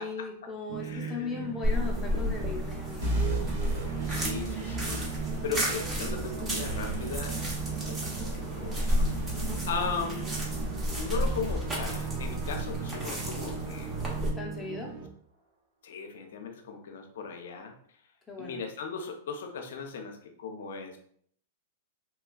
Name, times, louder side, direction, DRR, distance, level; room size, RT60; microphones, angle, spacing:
voice 1, 0.0-3.0 9.3-9.6 14.3-14.9 18.3-18.6, left 5 dB, 15° left, -1 dB, 0.7 m, -38 dB
sound 1, 0.7-15.1, right 8 dB, 45° right, 0.4 m, -39 dB
voice 2, 0.8-1.5 4.1-5.0 5.4-7.5 7.8-9.1 9.7-10.2 11.0-13.9 15.8-17.7 18.4-21.0, left 5 dB, 70° left, 4 dB, 0.5 m, -37 dB
sound 2, 1.6-14.3, equal, 20° right, 0.8 m, -32 dB
sound 3, 3.0-13.8, right 1 dB, 70° right, 1.3 m, -37 dB
3.1 x 2.3 x 2.2 m, 0.62 s
hypercardioid pair, 115°, 0 cm